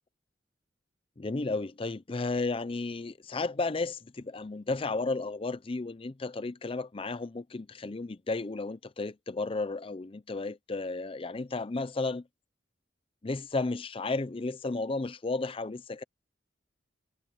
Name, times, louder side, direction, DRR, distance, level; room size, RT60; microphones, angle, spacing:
voice 1, 1.2-12.2 13.2-16.0, left 3 dB, 30° left, 0.5 m, -33 dB
head